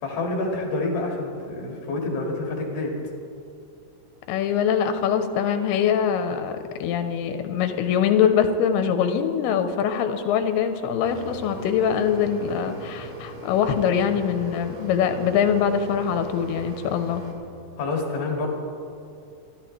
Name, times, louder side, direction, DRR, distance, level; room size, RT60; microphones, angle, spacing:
voice 1, 0.0-3.0 17.8-18.5, left 2 dB, 70° left, 0 dB, 3.9 m, -27 dB
voice 2, 4.3-17.2, left 8 dB, 90° left, 8 dB, 2.8 m, -23 dB
Mechanisms, 11.0-17.3, right 2 dB, 45° right, 2.9 m, -40 dB
27.0 x 11.5 x 3.2 m, 2.6 s
omnidirectional pair, 4.6 m